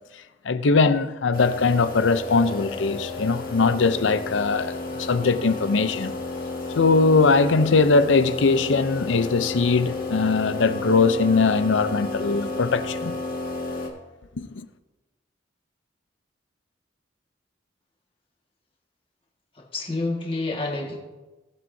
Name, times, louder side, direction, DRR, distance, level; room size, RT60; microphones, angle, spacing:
voice 1, 0.5-6.1 6.7-13.1 14.4-14.7, left 4 dB, 75° left, 0.6 m, -21 dB
sound 1, 1.3-13.9, left 2 dB, 50° left, 1.6 m, -32 dB
voice 2, 19.6-21.0, left 2 dB, 30° left, 1.7 m, -28 dB
18.0 x 7.6 x 2.7 m
head